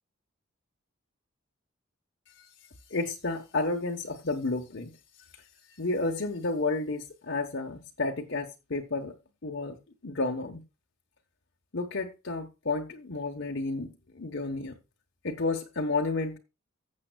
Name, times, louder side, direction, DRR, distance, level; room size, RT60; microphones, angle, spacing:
voice 1, 2.9-4.9 5.8-9.2 9.4-9.8 10.0-10.6 11.7-14.8 15.2-16.4, left 3 dB, 60° left, 1.1 m, -31 dB
15.0 x 7.4 x 2.3 m
head